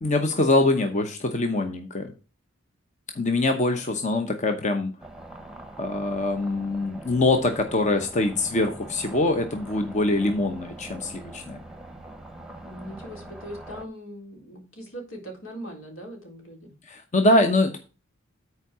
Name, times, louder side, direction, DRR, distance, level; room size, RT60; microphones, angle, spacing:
voice 1, 0.0-2.1 3.1-4.9 5.8-11.6 16.9-17.8, left 2 dB, 35° left, 5 dB, 0.9 m, -23 dB
sound 1, 5.0-13.9, right 1 dB, 5° right, 0.9 m, -43 dB
voice 2, 12.6-16.7, equal, 80° left, 1 dB, 3.8 m, -40 dB
9.8 x 4.7 x 6.0 m, 0.34 s
head